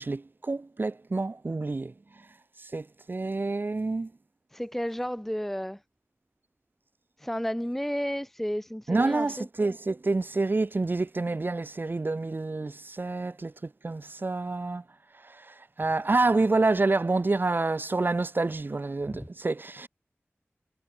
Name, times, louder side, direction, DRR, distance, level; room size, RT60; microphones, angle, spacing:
voice 1, 0.0-1.9 2.6-4.1 8.9-14.8 15.2-19.9, right 3 dB, 45° right, 0.5 m, -28 dB
voice 2, 4.5-5.8 7.2-9.5 19.1-19.3, equal, 5° left, 0.7 m, -32 dB
cardioid pair, 45°, 5 cm